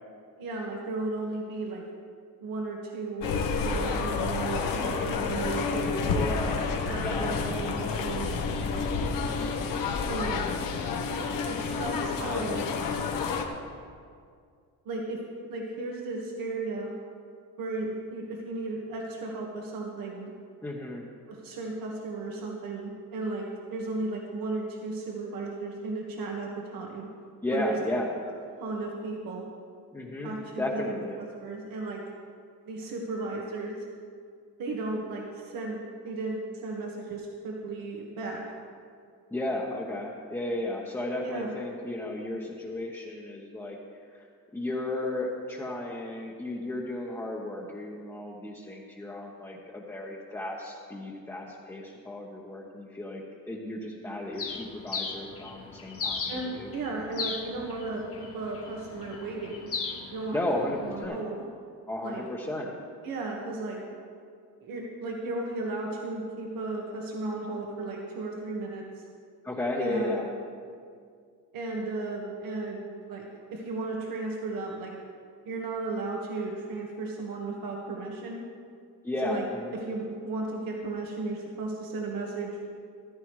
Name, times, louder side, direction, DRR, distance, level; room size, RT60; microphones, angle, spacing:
voice 1, 0.4-1.8 2.4-6.1 6.9-8.4 10.0-10.4 11.4-12.6 14.8-15.2 15.5-16.9 17.6-20.3 21.3-27.1 27.5-27.7 28.6-29.4 30.2-32.0 32.6-33.8 34.6-38.4 41.2-41.5 56.3-59.7 60.1-60.4 60.8-61.4 62.0-62.2 63.0-63.8 64.6-68.8 69.8-70.2 71.5-74.9 75.4-78.4 79.2-79.4 79.7-82.5, right 3 dB, 80° right, -1 dB, 1.7 m, -35 dB
sound 1, 3.2-13.4, left 4 dB, 75° left, 1.2 m, -29 dB
voice 2, 6.0-6.7 7.0-7.6 9.2-9.6 20.6-21.0 27.4-28.2 29.9-31.2 39.3-43.8 44.1-44.2 44.5-56.7 60.3-61.2 61.9-62.7 69.4-70.3 79.0-79.8, left 1 dB, 10° left, -3 dB, 1.1 m, -34 dB
Bird, 54.4-61.0, left 5 dB, 40° left, 1.3 m, -38 dB
14.5 x 13.5 x 3.2 m, 2.2 s
cardioid pair, 140°, 34 cm